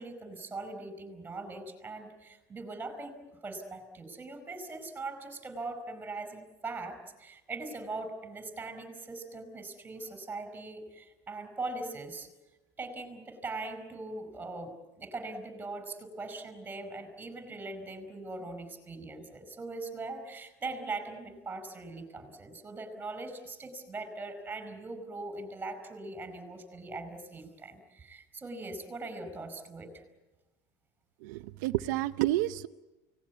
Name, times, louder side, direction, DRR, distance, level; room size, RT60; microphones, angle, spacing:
voice 1, 0.0-12.3 12.8-30.0, right 3 dB, 20° right, 10 dB, 4.9 m, -41 dB
voice 2, 31.2-32.7, right 16 dB, 80° right, 9 dB, 0.8 m, -30 dB
29.5 x 19.0 x 8.2 m, 1.1 s
supercardioid pair, 140°, 10 cm